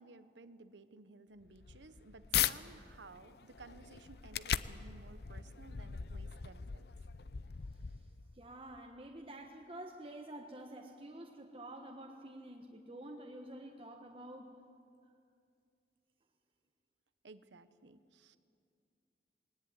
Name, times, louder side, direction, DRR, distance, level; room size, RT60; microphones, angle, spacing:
voice 1, 0.0-6.9 17.2-18.4, right 3 dB, 90° right, 12 dB, 1.0 m, -56 dB
sound 1, 1.4-2.5 3.1-8.3, left 9 dB, 65° left, 0.6 m, -39 dB
voice 2, 7.7-8.0 8.3-14.5 15.0-15.2, right 1 dB, 30° right, 1 dB, 1.3 m, -49 dB
21.0 x 18.5 x 9.7 m, 2.5 s
head